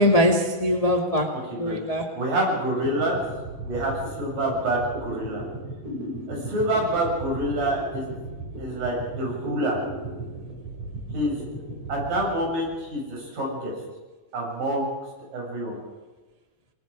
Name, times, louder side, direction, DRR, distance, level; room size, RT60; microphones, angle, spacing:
voice 1, 0.0-2.1, equal, 30° left, 2 dB, 0.7 m, -22 dB
voice 2, 1.3-1.8 2.1-3.2 3.6-5.4 6.3-8.1 8.6-9.8 11.1-11.4 11.9-13.7 14.3-15.0 15.3-15.8, right 1 dB, 70° right, -2 dB, 8.6 m, -27 dB
sound 1, 2.5-13.0, right 2 dB, 45° right, 6.5 m, -36 dB
29.0 x 19.5 x 5.0 m, 1.3 s
omnidirectional pair, 4.3 m